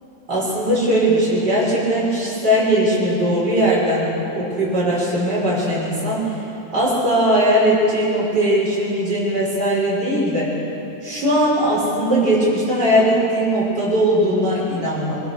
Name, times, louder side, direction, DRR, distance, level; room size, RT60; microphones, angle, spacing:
voice 1, 0.3-6.3 6.7-10.5 11.0-15.3, right 1 dB, 60° right, -7 dB, 6.7 m, -19 dB
23.5 x 23.5 x 7.0 m, 3.0 s
omnidirectional pair, 2.1 m